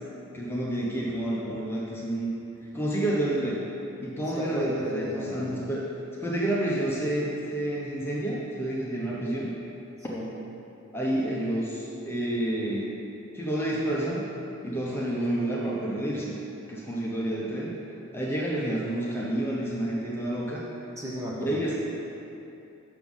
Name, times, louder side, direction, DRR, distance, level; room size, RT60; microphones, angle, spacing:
voice 1, 0.3-2.4 2.7-3.6 4.0-5.9 6.2-9.5 10.9-12.9 13.3-14.3 14.6-16.3 16.7-17.7 18.1-20.7 21.4-21.7, right 1 dB, 10° left, -5 dB, 0.8 m, -29 dB
voice 2, 4.4-5.7 10.1-10.3 14.9-15.0 21.0-21.7, equal, 15° right, -5 dB, 0.9 m, -35 dB
6.9 x 6.0 x 5.4 m, 2.8 s
head